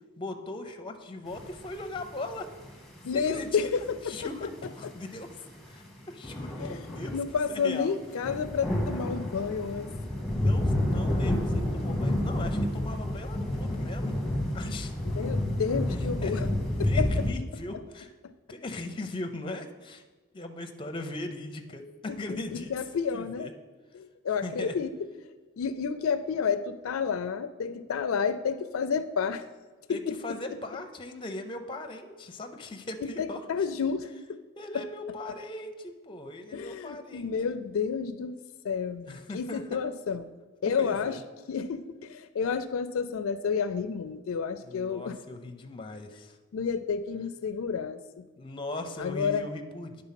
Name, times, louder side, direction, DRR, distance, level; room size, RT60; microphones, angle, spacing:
voice 1, 0.2-2.5 3.1-3.7 4.1-5.3 5.7-7.1 7.5-7.9 10.3-14.2 14.5-14.9 16.2-16.4 16.8-18.1 18.5-20.0 20.3-22.7 23.1-23.5 24.4-24.7 29.9-33.4 34.6-37.3 39.1-39.8 40.6-41.2 44.6-46.4 48.4-50.0, left 2 dB, 25° left, 6 dB, 0.6 m, -39 dB
sound 1, 1.3-7.4 7.9-8.0 8.2-17.3, left 1 dB, ahead, 1.0 m, -29 dB
voice 2, 3.0-4.5 4.8-4.9 6.6-6.8 7.1-9.9 11.7-12.1 15.1-16.5 16.8-17.1 18.2-18.3 22.3-23.5 23.9-25.1 25.6-29.5 29.9-30.2 30.5-30.6 33.0-34.4 34.7-34.9 36.5-38.4 38.6-40.3 40.6-41.2 41.5-45.2 46.5-48.2 49.0-49.5, left 6 dB, 75° left, 12 dB, 0.4 m, -30 dB
9.8 x 3.8 x 5.7 m, 1.3 s
head